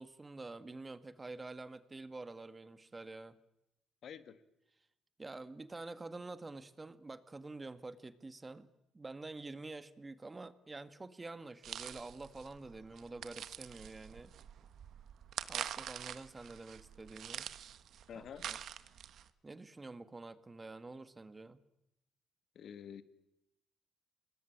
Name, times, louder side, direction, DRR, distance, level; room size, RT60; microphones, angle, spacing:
voice 1, 0.0-3.4 5.2-8.7 8.9-14.3 15.5-17.5 18.1-18.6 19.4-21.6, right 3 dB, 20° right, 13 dB, 1.6 m, -48 dB
voice 2, 4.0-4.4 18.1-18.5 22.6-23.0, left 8 dB, 65° left, 12 dB, 1.9 m, -48 dB
sound 1, 11.6-19.3, right 9 dB, 70° right, 1.4 m, -45 dB
26.0 x 20.5 x 10.0 m, 0.85 s
cardioid pair, 90°, 0 cm